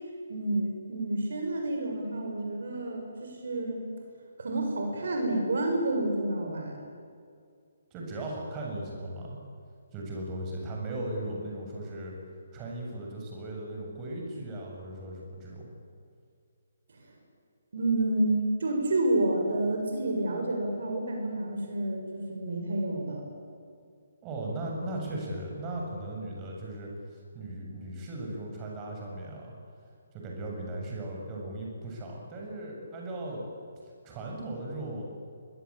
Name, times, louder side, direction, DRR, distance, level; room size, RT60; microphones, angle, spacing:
voice 1, 0.3-3.8 4.4-6.8 16.9-17.0 17.7-23.2, right 1 dB, 60° right, 2 dB, 6.7 m, -29 dB
voice 2, 7.9-9.4 9.9-12.1 12.5-15.7 24.2-29.5 30.1-33.5 34.0-35.1, right 1 dB, 20° right, -1 dB, 7.3 m, -37 dB
26.0 x 23.0 x 8.9 m, 2.2 s
figure-of-eight pair, 135°, 0 cm